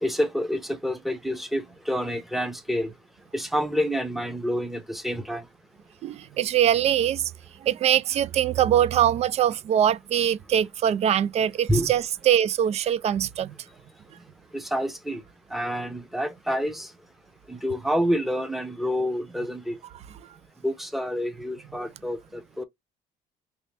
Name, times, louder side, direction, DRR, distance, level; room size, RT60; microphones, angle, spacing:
voice 1, 0.0-2.9 3.3-5.4 11.7-11.9 14.5-15.2 15.5-16.9 17.5-19.8 20.6-22.6, equal, ahead, 0.7 m, -28 dB
voice 2, 6.0-7.3 7.6-13.5, right 10 dB, 50° right, 0.4 m, -23 dB
3.1 x 2.8 x 3.2 m
cardioid pair, 105°, 14 cm